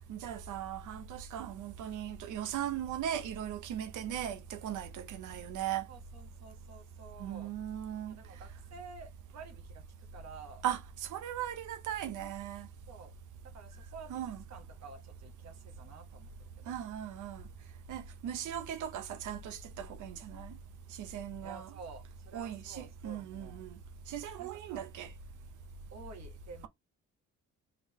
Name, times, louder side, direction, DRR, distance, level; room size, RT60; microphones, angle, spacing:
voice 1, 0.1-5.9 7.2-8.1 10.6-12.7 14.1-14.4 16.7-17.4 17.9-20.5 21.0-21.7 22.3-23.8 24.1-25.1, right 10 dB, 80° right, 0.9 m, -38 dB
voice 2, 5.9-7.5 8.1-10.6 12.9-13.1 13.4-16.3 16.6-16.7 21.4-23.6 24.4-24.8 25.9-26.7, right 4 dB, 60° right, 1.4 m, -51 dB
3.8 x 3.7 x 3.0 m
cardioid pair, 90°, 30 cm